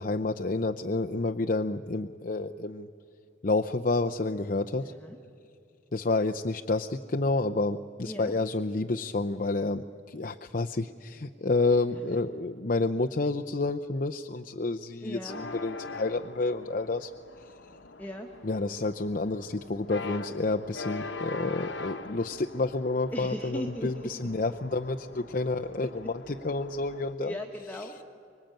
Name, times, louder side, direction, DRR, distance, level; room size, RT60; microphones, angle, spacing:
voice 1, 0.0-2.9 3.4-4.9 5.9-17.1 18.4-27.4, left 3 dB, 45° left, 5 dB, 0.6 m, -29 dB
voice 2, 4.8-5.2 8.0-8.3 15.0-15.4 18.0-18.4 23.1-24.3 25.4-25.5 25.8-26.4 27.2-28.0, equal, 10° left, 2 dB, 1.4 m, -39 dB
sound 1, 15.3-27.1, left 3 dB, 65° left, 1.1 m, -43 dB
25.0 x 23.0 x 9.0 m, 2.6 s
head